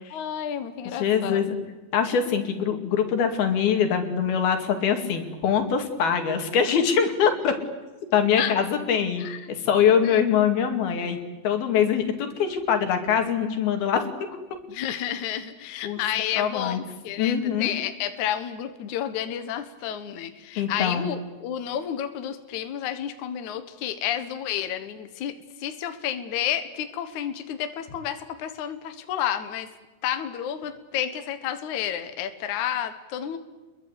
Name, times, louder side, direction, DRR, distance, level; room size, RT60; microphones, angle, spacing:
voice 1, 0.1-1.4 8.4-8.5 9.2-9.5 10.0-10.2 14.7-25.3 25.6-29.7 30.0-33.4, left 10 dB, 60° left, 8 dB, 2.5 m, -31 dB
voice 2, 0.9-1.6 1.9-7.6 8.1-9.2 9.5-11.2 11.4-14.1 15.8-16.0 16.4-16.8 17.2-17.7 20.6-21.1, left 7 dB, 80° left, 5 dB, 4.4 m, -23 dB
29.5 x 22.5 x 8.3 m, 1.2 s
omnidirectional pair, 4.3 m